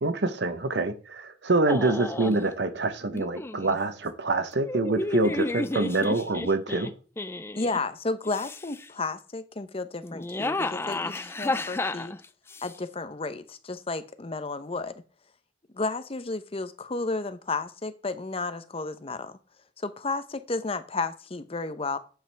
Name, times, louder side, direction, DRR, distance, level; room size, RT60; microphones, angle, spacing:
voice 1, 0.0-6.9, right 2 dB, 70° right, 0.9 m, -26 dB
sound 1, 1.7-2.4 3.1-3.8 4.6-7.8 8.3-8.9 10.0-12.7, left 2 dB, 15° left, 0.4 m, -32 dB
voice 2, 7.5-12.1 12.6-14.9 15.7-19.3 19.8-22.0, left 3 dB, 30° left, 0.8 m, -32 dB
10.0 x 8.1 x 3.4 m
head